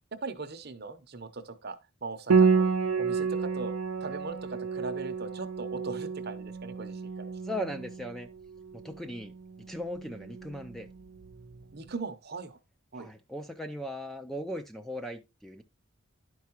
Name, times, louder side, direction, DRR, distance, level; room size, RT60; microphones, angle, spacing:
voice 1, 0.1-2.7 3.0-7.2 11.7-12.6 12.9-13.1, right 3 dB, 50° right, 0.8 m, -40 dB
Piano, 2.3-11.6, right 5 dB, 85° right, 0.5 m, -30 dB
voice 2, 7.4-8.3 8.7-10.9 12.9-15.6, equal, ahead, 0.4 m, -38 dB
11.5 x 4.7 x 2.9 m
head